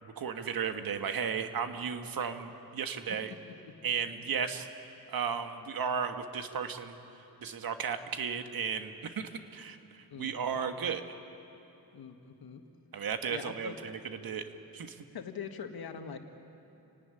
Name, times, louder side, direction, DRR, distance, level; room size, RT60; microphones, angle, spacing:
voice 1, 0.0-3.3 3.8-4.7 5.1-7.0 7.4-11.0 12.9-13.7 14.2-14.5 14.7-15.0, right 7 dB, 70° right, 7 dB, 1.7 m, -34 dB
voice 2, 10.1-10.6 11.9-12.6 13.3-13.8 15.1-16.2, left 6 dB, 75° left, 6 dB, 1.9 m, -43 dB
29.0 x 18.0 x 9.9 m, 3.0 s
wide cardioid pair, 145°, 37 cm